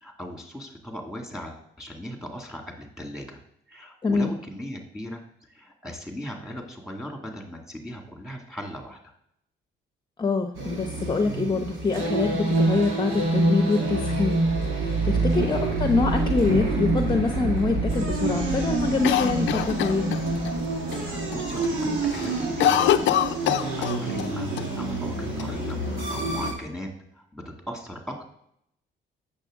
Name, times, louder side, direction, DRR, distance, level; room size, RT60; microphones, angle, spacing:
voice 1, 0.0-3.4 3.7-5.2 5.5-9.0 20.9-28.3, equal, ahead, 1 dB, 2.1 m, -38 dB
voice 2, 10.2-14.4 14.8-20.2, left 3 dB, 20° left, 5 dB, 0.8 m, -25 dB
sound 1, 10.5-26.5, right 2 dB, 85° right, 1.9 m, -26 dB
Cough, 19.0-20.5 20.9-21.0 21.3-21.7 22.0-24.3 24.6-24.7 25.4-26.2, left 11 dB, 70° left, 0.5 m, -24 dB
8.2 x 6.7 x 3.6 m, 0.73 s
cardioid pair, 90°, 20 cm